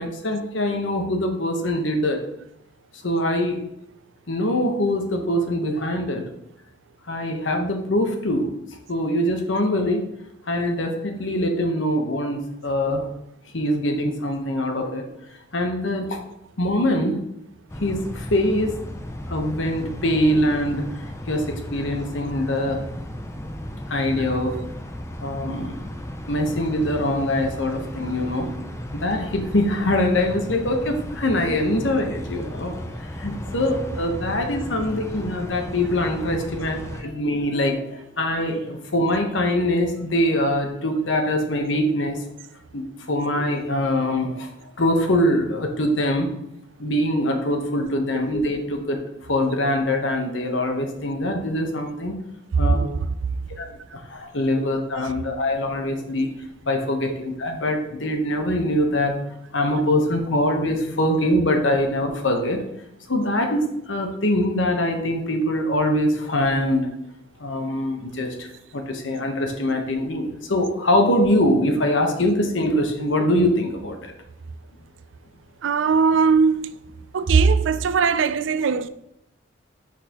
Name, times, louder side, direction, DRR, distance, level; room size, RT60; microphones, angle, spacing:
voice 1, 0.0-2.2 3.0-3.6 4.3-6.2 7.1-8.5 8.9-10.1 10.5-13.1 13.5-15.0 15.5-16.2 16.6-17.2 17.8-18.8 19.3-20.9 21.3-22.8 23.9-24.6 25.2-25.8 26.3-28.5 28.9-42.3 42.7-44.5 44.8-46.3 46.8-52.2 52.6-52.8 53.6-53.7 53.9-56.3 56.6-59.2 59.5-62.6 63.1-66.9 67.4-68.5 68.7-74.1, left 1 dB, 80° left, 1.1 m, -23 dB
sound 1, 17.7-37.0, equal, 15° left, 0.5 m, -35 dB
voice 2, 75.6-76.7 77.1-78.9, right 5 dB, 80° right, 0.4 m, -20 dB
6.4 x 5.9 x 3.0 m
head